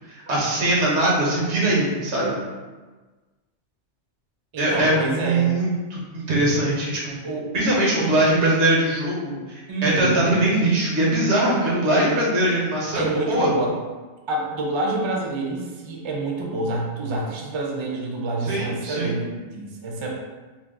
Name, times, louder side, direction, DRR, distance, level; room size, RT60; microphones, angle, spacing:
voice 1, 0.1-2.4 4.6-7.2 7.5-13.5 18.4-19.1, right 1 dB, 90° right, -4 dB, 1.2 m, -21 dB
voice 2, 4.5-5.5 7.2-7.5 7.9-8.1 9.7-10.2 12.9-13.8 14.3-20.1, right 2 dB, 45° right, -1 dB, 0.3 m, -27 dB
2.8 x 2.2 x 3.4 m, 1.3 s
omnidirectional pair, 1.1 m